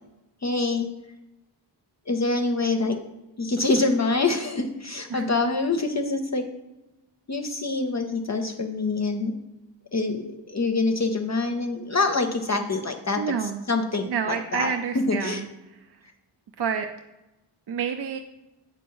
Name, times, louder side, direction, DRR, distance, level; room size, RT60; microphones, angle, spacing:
voice 1, 0.4-0.9 2.1-3.0 3.4-6.4 7.3-9.3 9.9-15.4, left 3 dB, 40° left, 5 dB, 0.6 m, -25 dB
voice 2, 13.2-13.6 14.1-15.4 16.6-16.9 17.7-18.2, right 7 dB, 60° right, 6 dB, 0.6 m, -28 dB
8.2 x 5.2 x 4.6 m, 0.99 s
wide cardioid pair, 140°, 44 cm